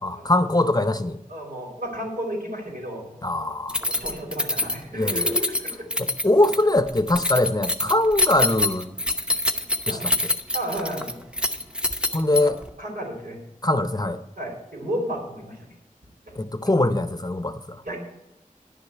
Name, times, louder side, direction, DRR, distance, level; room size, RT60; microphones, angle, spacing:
voice 1, 0.0-1.2 3.2-3.8 4.9-5.3 6.0-8.9 9.9-10.1 12.1-12.6 13.6-14.2 16.4-17.8, left 1 dB, 25° left, 10 dB, 0.7 m, -22 dB
voice 2, 1.3-3.2 3.8-5.9 9.9-10.1 10.5-11.2 12.4-12.5 12.8-13.4 14.4-15.7 16.3-16.4 17.8-18.0, right 1 dB, 80° right, -2 dB, 4.3 m, -32 dB
Keys jangling, 3.7-12.7, left 2 dB, 5° right, 0.8 m, -25 dB
11.0 x 6.6 x 8.5 m, 0.94 s
wide cardioid pair, 55°, 14 cm